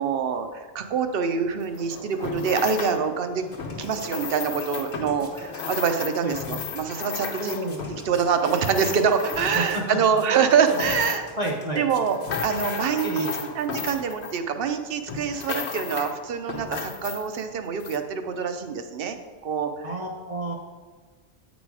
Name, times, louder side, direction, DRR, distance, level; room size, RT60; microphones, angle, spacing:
voice 1, 0.0-3.4 3.8-7.6 8.0-11.3 11.8-13.3 13.5-19.2 19.4-19.9, right 6 dB, 65° right, 8 dB, 0.8 m, -25 dB
sound 1, 1.6-3.0 3.5-9.9 10.4-11.4 11.9-14.7 15.1-16.2 16.5-17.4 17.8-18.0, left 5 dB, 80° left, 1.1 m, -34 dB
sound 2, 2.9-13.6, left 2 dB, 45° left, 1.1 m, -49 dB
voice 2, 7.4-7.9 9.5-10.0 10.3-10.5 11.4-11.8 13.0-13.4 19.8-20.6, right 1 dB, 35° right, -1 dB, 0.8 m, -30 dB
8.7 x 4.1 x 4.7 m, 1.5 s
omnidirectional pair, 1.1 m